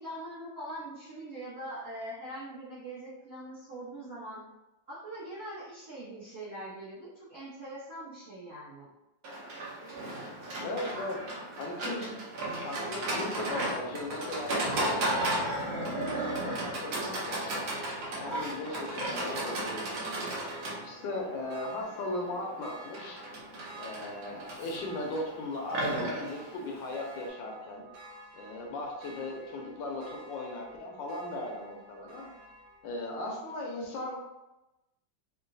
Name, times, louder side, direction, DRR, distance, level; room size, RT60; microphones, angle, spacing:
voice 1, 0.0-4.4 4.9-8.9, right 1 dB, 45° right, -11 dB, 0.9 m, -42 dB
Livestock farm animals working animals, 9.2-27.3, right 1 dB, 65° right, 1.2 m, -35 dB
voice 2, 10.6-11.2 11.6-12.1 12.6-14.9 15.3-17.6 18.1-20.4 20.8-23.2 23.8-27.9 28.3-32.3 32.8-34.2, left 2 dB, 80° left, 0 dB, 1.3 m, -37 dB
sound 1, 14.3-33.0, equal, 85° right, 1.5 m, -50 dB
3.8 x 2.1 x 2.6 m, 0.98 s
omnidirectional pair, 2.1 m